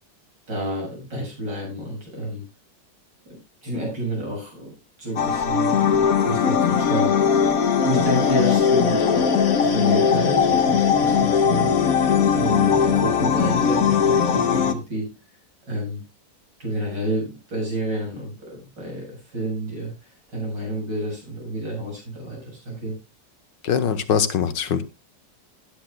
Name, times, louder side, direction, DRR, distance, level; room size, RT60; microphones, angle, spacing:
voice 1, 0.5-2.5 3.2-4.7 5.0-7.2 7.5-11.7 12.3-15.1 15.7-16.0 16.6-23.0, right 1 dB, 70° right, -1 dB, 8.2 m, -29 dB
sound 1, 5.2-14.7, left 7 dB, 55° left, 1.5 m, -19 dB
voice 2, 23.6-24.8, left 7 dB, 80° left, 11 dB, 1.9 m, -22 dB
18.0 x 10.0 x 2.3 m, 0.25 s
omnidirectional pair, 1.9 m